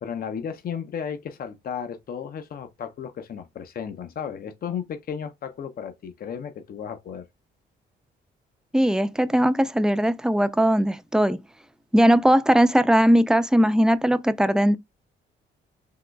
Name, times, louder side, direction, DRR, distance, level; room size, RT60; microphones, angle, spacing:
voice 1, 0.0-7.2, left 7 dB, 50° left, 0.6 m, -34 dB
voice 2, 8.7-11.4 11.9-14.8, equal, 5° right, 0.4 m, -19 dB
3.8 x 2.9 x 2.2 m
cardioid pair, 90°, 20 cm